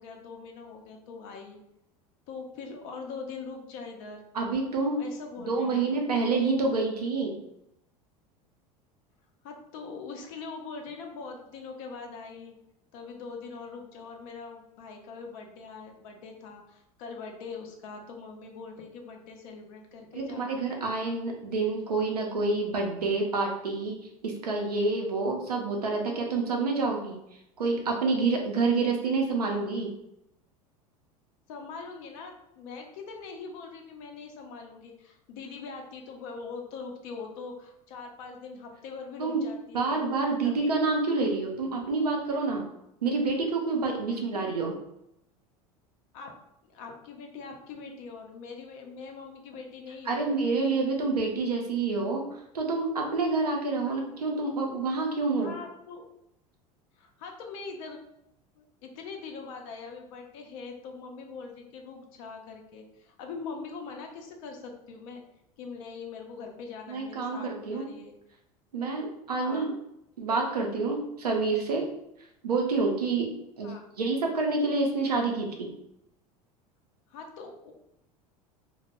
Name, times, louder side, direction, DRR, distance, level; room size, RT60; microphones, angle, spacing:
voice 1, 0.0-1.6 2.3-4.2 5.0-6.2 9.4-12.6 12.9-20.5 31.5-40.0 40.4-40.7 44.3-44.6 46.1-46.4 46.7-50.4 53.8-54.2 55.4-56.1 57.0-58.0 58.6-65.2 65.6-68.1 69.4-69.7 73.6-73.9 77.1-77.7, left 4 dB, 60° left, 2 dB, 0.6 m, -42 dB
voice 2, 4.3-5.1 5.4-7.4 20.1-24.0 24.2-27.2 27.6-29.9 39.2-39.4 39.7-42.7 43.0-44.7 50.1-52.2 52.5-55.5 66.9-67.9 68.7-69.7 70.2-71.9 72.4-73.3 73.6-75.7, right 3 dB, 90° right, 1 dB, 0.5 m, -28 dB
2.1 x 2.1 x 2.9 m, 0.80 s
hypercardioid pair, 80°, 19 cm